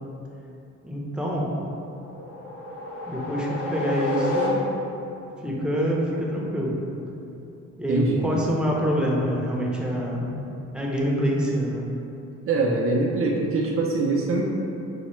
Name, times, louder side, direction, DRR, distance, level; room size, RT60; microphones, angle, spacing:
voice 1, 0.8-1.6 3.0-4.7 5.4-6.8 7.8-11.9, equal, 5° right, -4 dB, 0.6 m, -26 dB
sound 1, 1.8-5.1, left 2 dB, 50° left, 0.7 m, -30 dB
voice 2, 7.9-8.3 12.5-14.4, right 3 dB, 45° right, -2 dB, 0.5 m, -23 dB
5.4 x 2.0 x 3.0 m, 2.9 s
cardioid pair, 90°, 30 cm